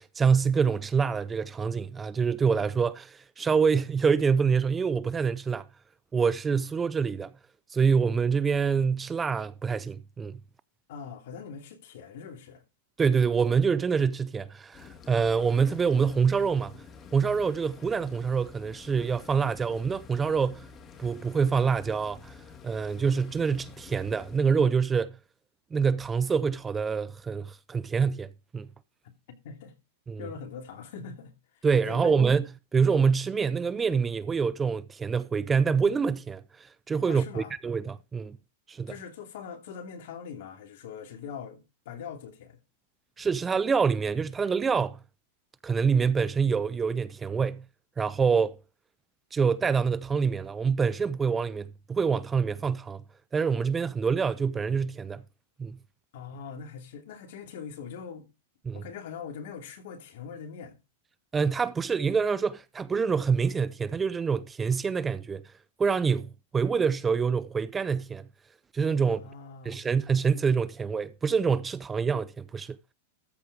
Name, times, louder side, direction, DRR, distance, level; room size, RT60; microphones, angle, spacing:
voice 1, 0.0-5.7 6.1-7.3 7.7-10.4 13.0-16.8 17.1-20.7 21.0-22.4 22.6-25.2 25.7-28.7 30.1-30.3 31.6-38.4 38.7-38.9 43.2-45.0 45.6-47.7 48.0-48.6 49.3-53.0 53.3-55.2 55.6-55.8 58.7-58.8 61.3-65.4 65.8-68.3 68.7-69.3 69.7-72.8, right 5 dB, 15° right, 0.4 m, -26 dB
voice 2, 10.9-12.6 29.4-29.7 30.2-32.2 37.1-37.5 38.9-42.6 56.1-58.3 58.7-60.8 69.0-69.9, left 6 dB, 65° left, 2.7 m, -42 dB
sound 1, 14.7-24.4, left 6 dB, 25° left, 1.6 m, -49 dB
13.5 x 4.9 x 4.8 m
hypercardioid pair, 140°, 0 cm